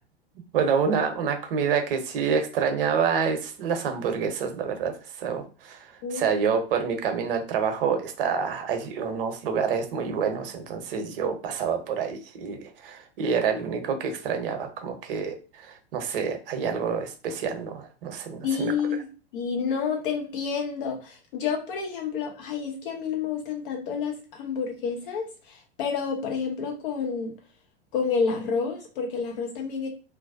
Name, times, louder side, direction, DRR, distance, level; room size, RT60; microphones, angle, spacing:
voice 1, 0.5-18.7, right 6 dB, 60° right, 5 dB, 0.7 m, -27 dB
voice 2, 6.0-6.4 18.4-19.1 19.3-27.3 27.9-29.9, left 6 dB, 55° left, 1 dB, 1.0 m, -29 dB
2.5 x 2.0 x 2.5 m, 0.35 s
figure-of-eight pair, 95°, 31 cm